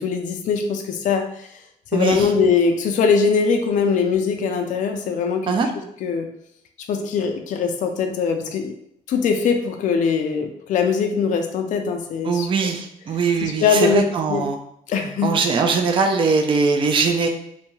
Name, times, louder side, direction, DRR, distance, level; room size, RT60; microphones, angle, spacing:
voice 1, 0.0-1.6 1.9-5.5 6.0-6.3 6.9-8.7 9.1-12.5 13.4-14.4 14.9-15.3, left 5 dB, 55° left, 4 dB, 0.4 m, -21 dB
voice 2, 1.9-2.3 5.5-5.7 12.2-14.6 15.2-17.3, right 4 dB, 35° right, 4 dB, 0.4 m, -21 dB
2.6 x 2.2 x 3.0 m, 0.74 s
cardioid pair, 140°, 15 cm